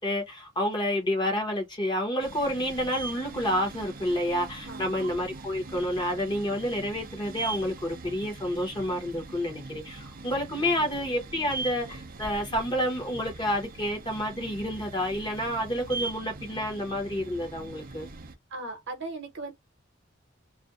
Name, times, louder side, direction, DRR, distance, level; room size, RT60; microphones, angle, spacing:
voice 1, 0.0-18.1, equal, 25° left, 0.8 m, -29 dB
sound 1, 2.2-18.4, right 3 dB, 45° right, 0.4 m, -41 dB
voice 2, 4.7-5.1 10.6-10.9 18.5-19.5, right 2 dB, 60° right, 0.8 m, -38 dB
2.5 x 2.1 x 2.4 m
head